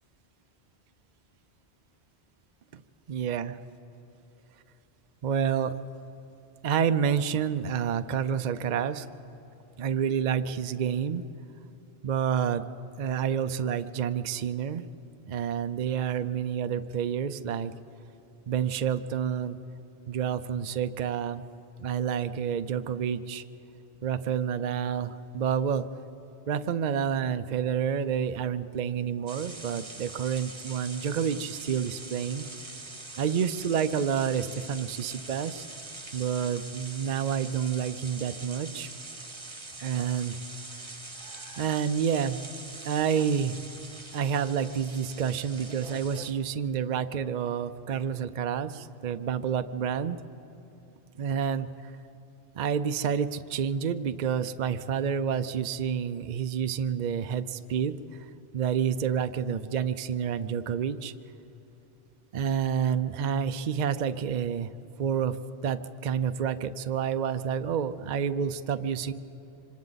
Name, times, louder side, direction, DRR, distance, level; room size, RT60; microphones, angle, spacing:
voice 1, 3.1-3.6 5.2-5.7 6.6-9.1 9.8-11.2 12.0-12.6 13.0-14.8 15.3-17.7 18.5-19.6 20.1-21.4 21.8-23.4 24.0-25.8 26.5-32.5 33.2-35.7 36.1-38.9 39.8-40.4 41.6-42.4 42.8-43.6 44.1-50.2 51.2-51.7 52.6-57.9 58.5-61.1 62.3-64.7 65.0-65.4 65.6-69.1, right 8 dB, 50° right, 10 dB, 0.6 m, -29 dB
sound 1, 29.3-46.3, right 2 dB, 25° right, 1.1 m, -43 dB
26.5 x 25.5 x 4.0 m, 2.9 s
omnidirectional pair, 1.1 m